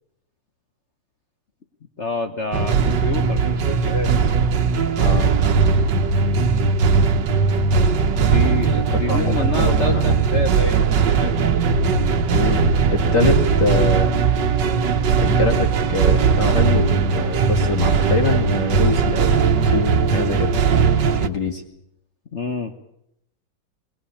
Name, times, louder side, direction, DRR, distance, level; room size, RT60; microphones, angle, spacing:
voice 1, 2.0-4.1 8.3-11.4 22.3-22.7, left 3 dB, 40° left, 4 dB, 1.2 m, -27 dB
sound 1, 2.5-21.3, right 5 dB, 65° right, 1.6 m, -18 dB
voice 2, 5.0-5.3 8.9-10.2 12.3-12.6 12.9-14.1 15.2-20.5 21.2-21.6, left 3 dB, 60° left, 0 dB, 2.7 m, -24 dB
21.5 x 20.0 x 8.5 m, 0.77 s
omnidirectional pair, 2.1 m